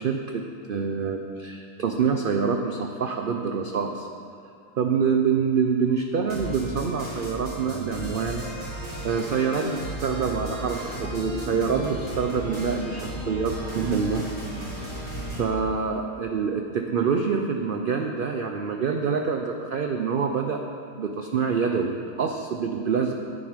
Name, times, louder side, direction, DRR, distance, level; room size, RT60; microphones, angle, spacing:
voice 1, 0.0-4.1 4.8-8.4 9.0-14.2 15.4-20.6 21.0-23.1, right 5 dB, 70° right, 4 dB, 0.5 m, -26 dB
sound 1, 6.3-15.5, right 1 dB, 25° right, 3.1 m, -35 dB
9.5 x 9.4 x 5.1 m, 2.4 s
omnidirectional pair, 1.6 m